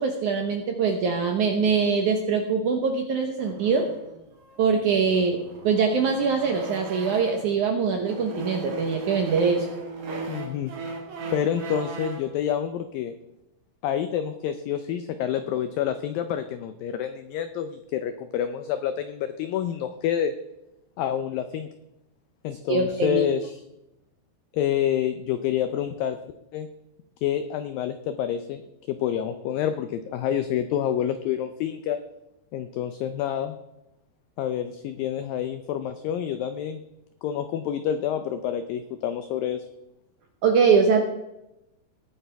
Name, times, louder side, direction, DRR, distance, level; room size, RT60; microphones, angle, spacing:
voice 1, 0.0-3.9 4.6-9.7 22.7-23.2 40.4-41.1, right 5 dB, 75° right, 3 dB, 1.9 m, -23 dB
sound 1, 3.4-7.6 8.0-12.3, right 3 dB, 55° right, 2.6 m, -37 dB
voice 2, 10.3-10.7 11.3-13.1 13.8-20.3 21.0-21.7 22.4-23.5 24.5-26.2 26.5-26.7 27.2-28.6 28.9-32.0 32.5-33.6 34.4-36.8 37.2-39.7, left 9 dB, 85° left, 9 dB, 2.0 m, -28 dB
19.0 x 8.9 x 3.4 m, 0.89 s
omnidirectional pair, 4.8 m